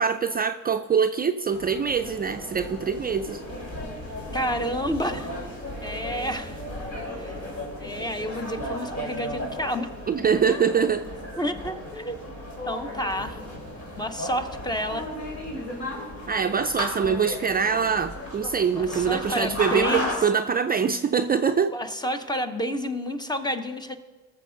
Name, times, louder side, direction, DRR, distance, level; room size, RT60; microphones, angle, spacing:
voice 1, 0.0-3.4 10.1-11.0 16.3-21.7, right 6 dB, 30° right, 7 dB, 0.4 m, -24 dB
sound 1, 1.5-20.2, left 1 dB, 65° left, 3.4 m, -35 dB
voice 2, 4.3-5.3 5.8-6.6 7.2-7.3 7.8-9.9 10.5-10.6 11.4-12.2 12.6-13.4 14.0-15.1 18.7-20.1 21.7-24.0, equal, 15° left, 8 dB, 0.8 m, -30 dB
18.5 x 7.0 x 3.9 m, 1.3 s
cardioid pair, 90°, 30 cm